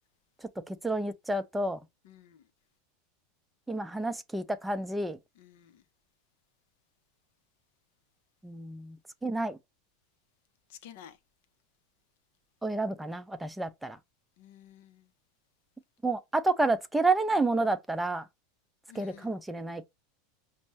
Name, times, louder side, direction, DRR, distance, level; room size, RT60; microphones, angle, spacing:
voice 1, 0.4-1.8 3.7-5.2 8.4-9.0 9.2-9.6 12.6-14.0 16.0-18.3 18.9-19.8, right 2 dB, 5° right, 0.5 m, -30 dB
voice 2, 2.0-2.4 5.4-5.8 10.7-11.2 14.4-15.1 18.9-19.3, left 10 dB, 65° left, 0.5 m, -52 dB
5.2 x 2.0 x 2.8 m
hypercardioid pair, 85°, 0 cm